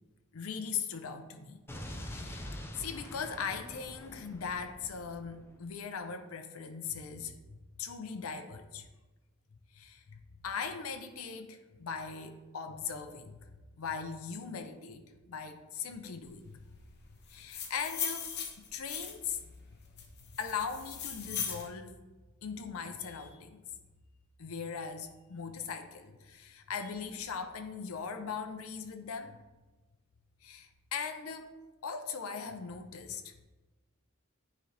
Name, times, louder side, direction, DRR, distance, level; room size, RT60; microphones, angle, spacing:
voice 1, 0.3-1.6 2.1-2.5 2.8-8.9 9.7-13.4 13.8-16.6 17.3-18.3 18.6-19.5 20.4-21.9 22.4-23.6 24.4-29.4 30.4-31.5 31.8-33.3, left 6 dB, 85° left, 7 dB, 0.5 m, -40 dB
Explosion, 1.7-5.7, left 1 dB, 10° left, 0.5 m, -45 dB
sound 1, 17.3-19.4 20.0-21.7, left 7 dB, 50° left, 0.9 m, -38 dB
9.4 x 3.8 x 3.2 m, 1.2 s
head